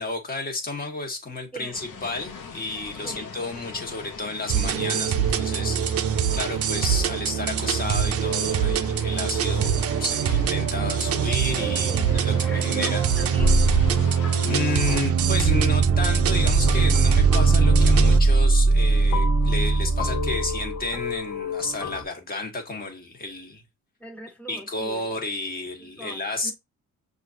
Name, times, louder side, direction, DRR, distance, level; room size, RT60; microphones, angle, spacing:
voice 1, 0.0-13.0 14.4-23.6 24.5-26.5, left 2 dB, 30° left, 1.4 m, -31 dB
voice 2, 1.5-2.1 3.0-3.4 11.8-13.6 24.0-25.2 25.8-26.5, right 1 dB, 5° left, 1.3 m, -42 dB
sound 1, 1.7-15.0, left 5 dB, 85° left, 0.9 m, -39 dB
sound 2, 4.5-18.2, right 8 dB, 50° right, 0.5 m, -23 dB
sound 3, 13.4-22.0, right 2 dB, 60° left, 0.9 m, -22 dB
6.2 x 2.6 x 2.6 m
cardioid pair, 90°, 30 cm